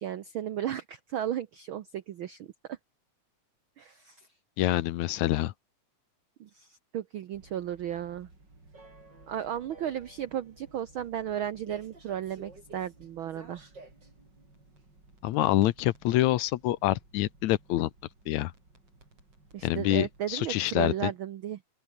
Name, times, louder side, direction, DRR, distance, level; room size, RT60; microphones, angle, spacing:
voice 1, 0.0-2.8 3.8-4.3 6.4-8.3 9.3-13.7 19.5-21.6, right 10 dB, 80° right, 1.1 m, -35 dB
voice 2, 4.6-5.5 15.2-17.9 18.3-18.5 19.6-21.1, left 15 dB, 75° left, 2.1 m, -26 dB
sound 1, 7.3-20.6, right 2 dB, 35° right, 7.1 m, -55 dB
sound 2, 14.4-16.2 18.0-20.6, right 2 dB, 50° right, 9.1 m, -63 dB
open air
omnidirectional pair, 3.5 m